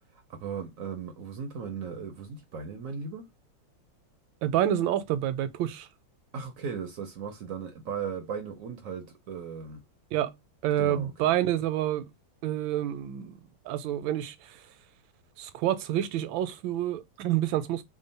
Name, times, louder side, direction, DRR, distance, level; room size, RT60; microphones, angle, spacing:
voice 1, 0.1-3.3 6.3-9.8 10.8-11.1, right 6 dB, 70° right, 0.8 m, -37 dB
voice 2, 4.4-5.9 10.1-10.3 10.6-12.1 12.4-13.4 13.6-14.6 15.4-17.8, right 12 dB, 85° right, 1.3 m, -28 dB
3.6 x 2.1 x 3.9 m
omnidirectional pair, 2.1 m